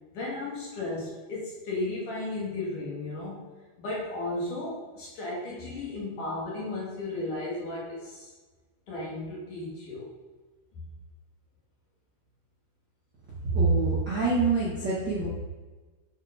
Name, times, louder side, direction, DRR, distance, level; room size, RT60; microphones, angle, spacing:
voice 1, 0.1-3.4 3.8-8.3 8.9-10.1 10.7-10.9, left 2 dB, 55° left, -5 dB, 2.8 m, -34 dB
voice 2, 13.4-15.3, right 3 dB, 60° right, -8 dB, 1.1 m, -25 dB
9.0 x 5.2 x 5.1 m, 1.3 s
omnidirectional pair, 5.5 m